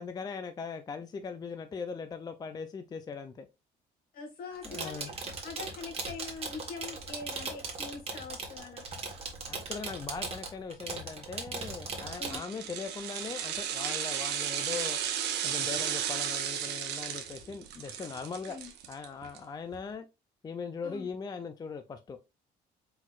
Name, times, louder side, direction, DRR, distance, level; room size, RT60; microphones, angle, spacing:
voice 1, 0.0-3.5 4.6-5.1 9.5-15.0 15.4-18.6 18.9-20.1 20.4-22.2, left 5 dB, 25° left, 0.4 m, -40 dB
voice 2, 4.1-8.8 12.2-12.4 18.5-18.7 20.8-21.1, left 4 dB, 60° left, 1.9 m, -43 dB
sound 1, 4.6-12.4, right 4 dB, 35° right, 1.5 m, -39 dB
sound 2, 12.1-19.4 19.7-19.8, right 9 dB, 85° right, 0.9 m, -34 dB
4.5 x 4.0 x 2.4 m
cardioid pair, 110°, 17 cm